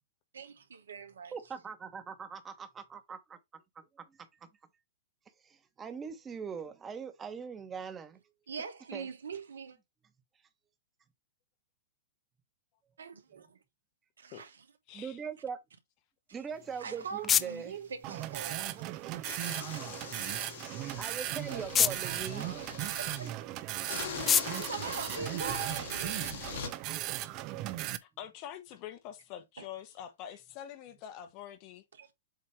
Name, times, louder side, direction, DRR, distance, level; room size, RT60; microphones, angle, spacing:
voice 1, 0.3-1.3 8.5-9.8 13.0-13.6 14.2-14.6 16.8-19.5 21.5-23.3 24.5-26.7 29.6-29.7 32.0-32.1, right 6 dB, 75° right, 1.1 m, -43 dB
voice 2, 1.3-3.4 3.7-4.2 5.4-8.2 8.9-9.1 14.9-15.6 16.3-17.8 21.0-22.5, right 6 dB, 20° right, 1.3 m, -41 dB
voice 3, 14.9-15.2 25.4-25.6 28.0-31.8, left 10 dB, 45° left, 1.1 m, -45 dB
sound 1, 16.5-25.9, left 8 dB, 25° left, 0.4 m, -35 dB
sound 2, 18.0-28.0, right 15 dB, 40° right, 0.7 m, -37 dB
sound 3, 19.2-23.3 23.9-26.7, left 6 dB, 65° left, 2.2 m, -42 dB
7.7 x 2.9 x 4.7 m
hypercardioid pair, 110°, 0 cm